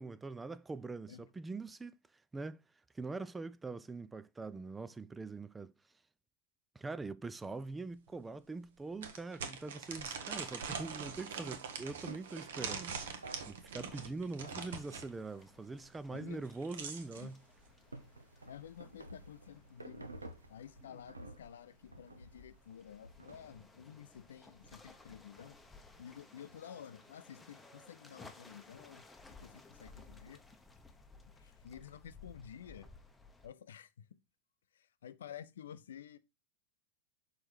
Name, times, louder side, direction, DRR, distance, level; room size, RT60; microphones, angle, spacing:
voice 1, 0.0-2.6 2.9-5.7 6.8-13.0 13.5-17.4, right 3 dB, 10° right, 0.3 m, -43 dB
sound 1, 7.5-7.6 8.1-8.2 9.0-15.1 16.3-17.2, right 6 dB, 60° right, 1.0 m, -43 dB
sound 2, 10.7-28.5, right 2 dB, 80° right, 0.8 m, -56 dB
sound 3, 14.6-33.5, left 3 dB, 10° left, 0.8 m, -59 dB
voice 2, 16.1-16.4 17.2-17.3 18.5-20.1 20.5-25.6 26.0-29.0 29.3-30.4 31.3-32.9 33.4-34.0 34.7-36.2, left 9 dB, 65° left, 0.5 m, -51 dB
6.3 x 4.3 x 4.7 m
figure-of-eight pair, 90°, 0 cm